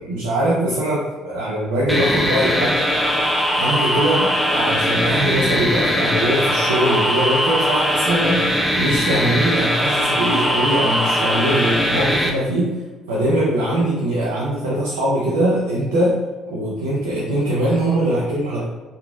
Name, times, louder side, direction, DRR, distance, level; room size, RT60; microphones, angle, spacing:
voice 1, 0.0-2.8 3.5-12.7 13.1-16.2 16.5-18.6, right 1 dB, 80° right, -7 dB, 0.4 m, -21 dB
sound 1, 1.9-12.3, equal, 15° left, 0.5 m, -20 dB
2.9 x 2.4 x 2.3 m, 1.3 s
hypercardioid pair, 55°, 0 cm